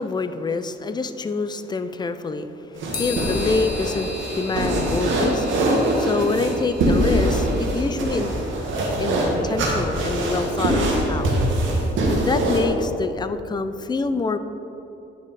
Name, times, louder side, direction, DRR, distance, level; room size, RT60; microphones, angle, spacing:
voice 1, 0.0-5.5 6.0-8.3 9.0-11.3 12.3-14.4, left 4 dB, 20° left, 11 dB, 0.4 m, -26 dB
sound 1, 2.8-12.7, right 1 dB, 75° right, 1.5 m, -22 dB
sound 2, 2.9-8.2, left 4 dB, 45° left, 1.5 m, -37 dB
9.3 x 5.0 x 4.1 m, 3.0 s
cardioid pair, 90°, 20 cm